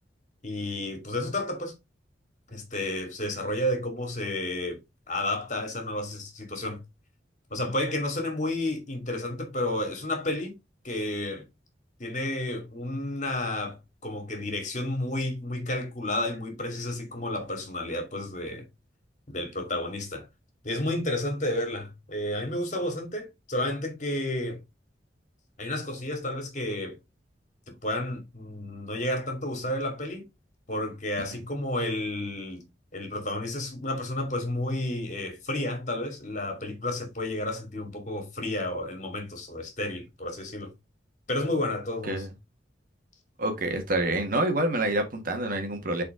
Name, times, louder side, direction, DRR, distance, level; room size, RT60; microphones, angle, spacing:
voice 1, 0.4-1.7 2.5-4.8 5.1-6.8 7.5-10.5 10.8-11.4 12.0-18.6 19.3-20.3 20.6-24.6 25.6-27.0 27.8-30.2 30.7-32.6 32.9-40.7 41.3-42.2, left 1 dB, 45° left, 2.5 m, -31 dB
voice 2, 43.4-46.0, right 1 dB, 50° right, 1.7 m, -27 dB
7.0 x 4.3 x 3.8 m
head